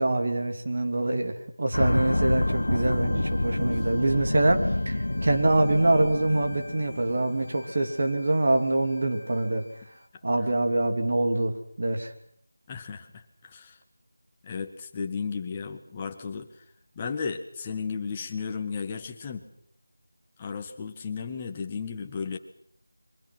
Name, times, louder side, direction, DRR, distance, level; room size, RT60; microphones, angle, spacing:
voice 1, 0.0-9.7 10.2-12.1, right 2 dB, 45° right, 5 dB, 2.9 m, -25 dB
sound 1, 1.7-7.9 8.2-8.3, left 1 dB, 75° left, 1.0 m, -28 dB
voice 2, 12.7-13.8 14.4-16.7 16.9-19.5 20.4-22.4, left 5 dB, 15° left, 4 dB, 1.6 m, -34 dB
28.5 x 24.0 x 6.2 m, 0.63 s
figure-of-eight pair, 175°, 0 cm